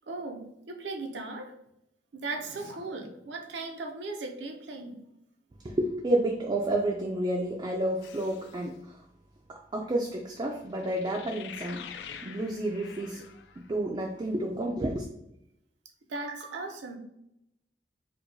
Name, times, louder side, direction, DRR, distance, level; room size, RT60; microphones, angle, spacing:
voice 1, 0.1-1.5 2.1-5.0 16.1-17.0, right 3 dB, 85° right, 3 dB, 0.5 m, -37 dB
voice 2, 5.6-9.0 9.5-11.9 12.2-13.2 13.6-15.1, right 1 dB, 25° right, 0 dB, 0.3 m, -30 dB
sound 1, 8.0-8.7 10.8-13.7, left 7 dB, 80° left, 0.3 m, -46 dB
4.5 x 2.2 x 2.6 m, 0.79 s
head